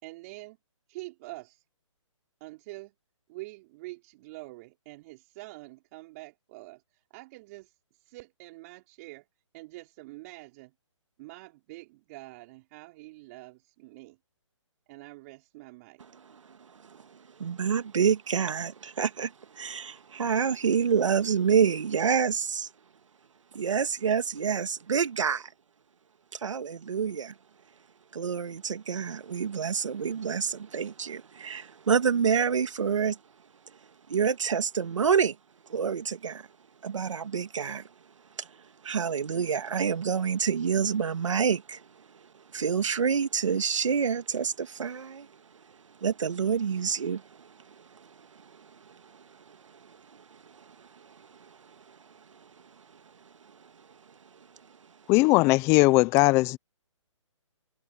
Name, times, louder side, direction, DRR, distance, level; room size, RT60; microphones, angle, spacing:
voice 1, 0.0-0.6 0.9-1.6 2.4-2.9 3.3-7.7 8.0-9.3 9.5-10.7 11.2-14.2 14.9-16.0, right 22 dB, 30° right, 5.2 m, -46 dB
voice 2, 17.4-22.7 23.5-25.5 26.3-27.3 28.1-33.2 34.1-35.4 35.7-36.5 36.8-37.9 38.4-38.5 38.8-41.8 42.5-45.3 46.0-47.5 47.8-49.0 49.5-49.6 49.9-50.0 50.3-51.1, right 6 dB, 70° right, 2.2 m, -28 dB
voice 3, 55.1-56.6, left 23 dB, 15° left, 0.6 m, -20 dB
hypercardioid pair, 155°, 16 cm